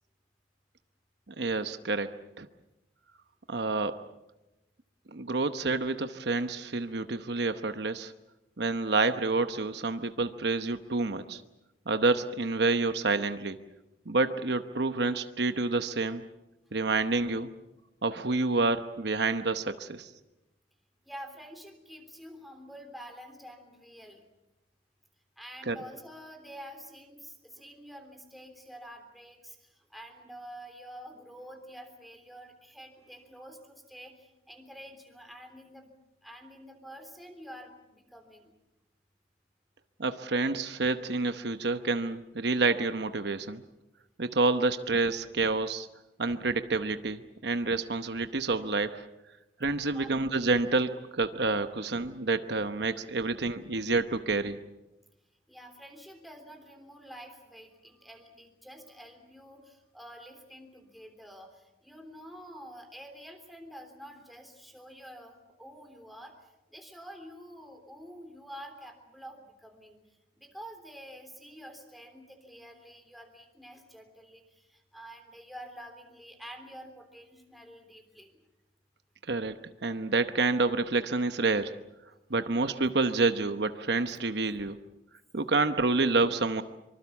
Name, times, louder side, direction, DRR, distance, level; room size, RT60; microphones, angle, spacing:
voice 1, 1.4-2.1 2.4-2.5 3.5-4.0 5.1-8.1 8.6-11.4 11.9-13.6 14.1-16.2 16.7-17.5 18.0-20.1 25.6-25.8 40.0-43.6 44.2-45.9 46.2-49.0 49.6-54.6 79.3-79.5 79.8-81.7 82.3-84.8 85.3-86.6, right 3 dB, 60° right, 9 dB, 1.0 m, -28 dB
voice 2, 21.0-24.2 25.4-35.9 36.2-38.5 49.9-50.1 55.5-66.3 66.7-70.0 70.4-78.4, equal, ahead, 5 dB, 3.3 m, -48 dB
25.0 x 24.5 x 7.2 m, 0.97 s
head